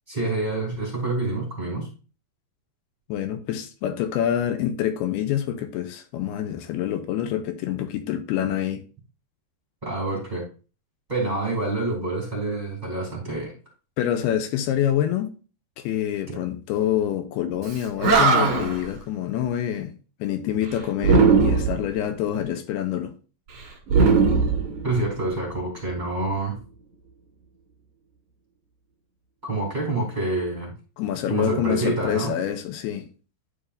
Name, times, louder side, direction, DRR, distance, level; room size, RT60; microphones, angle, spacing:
voice 1, 0.1-1.9 9.8-10.4 11.1-13.6 16.3-16.4 24.8-26.5 29.4-30.7 31.3-32.3, right 2 dB, 10° right, 2.8 m, -27 dB
voice 2, 3.1-8.8 14.0-15.3 15.8-19.9 20.2-23.1 31.0-33.1, left 10 dB, 85° left, 2.7 m, -26 dB
Animal, 17.7-17.8 18.0-18.8 21.0-21.9 23.9-25.2, right 4 dB, 45° right, 2.5 m, -18 dB
11.0 x 5.2 x 2.5 m
omnidirectional pair, 4.5 m